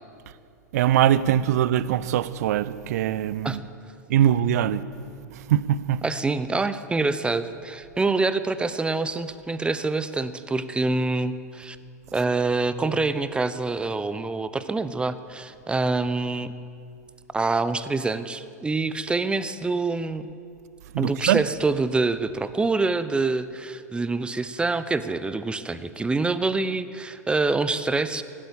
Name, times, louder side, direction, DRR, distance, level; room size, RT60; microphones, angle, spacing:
voice 1, 0.7-3.6 4.1-4.8 5.3-6.0 20.9-21.4, right 11 dB, 60° right, 0.6 m, -22 dB
voice 2, 6.0-11.8 12.1-16.5 17.3-20.3 21.0-28.2, right 3 dB, 10° right, 0.7 m, -26 dB
16.0 x 12.0 x 7.1 m
figure-of-eight pair, 95°, 9 cm